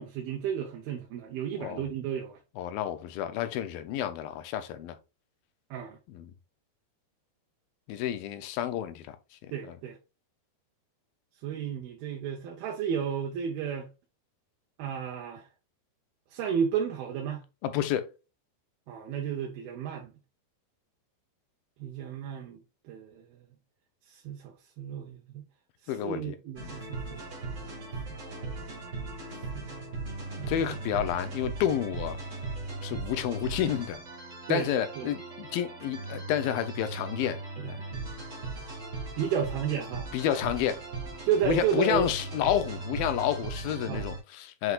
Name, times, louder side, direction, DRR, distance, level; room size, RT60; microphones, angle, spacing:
voice 1, 0.0-2.4 5.7-6.0 9.5-10.0 11.4-13.9 14.8-15.5 16.3-17.4 18.9-20.1 21.8-22.6 22.9-23.3 24.1-25.4 25.8-27.2 29.5-30.1 30.4-30.8 34.5-34.7 35.0-35.1 37.6-37.7 39.2-40.1 41.3-42.1 43.9-44.1, right 8 dB, 75° right, 2.8 m, -32 dB
voice 2, 2.6-5.0 6.1-6.3 7.9-9.2 9.6-9.8 17.6-18.1 25.9-26.4 26.6-26.7 30.5-32.2 32.8-34.0 34.5-37.4 37.7-37.8 40.1-40.8 41.5-44.7, left 10 dB, 75° left, 2.4 m, -30 dB
sound 1, 26.5-44.2, right 3 dB, 40° right, 1.0 m, -38 dB
8.0 x 4.8 x 2.4 m
omnidirectional pair, 4.6 m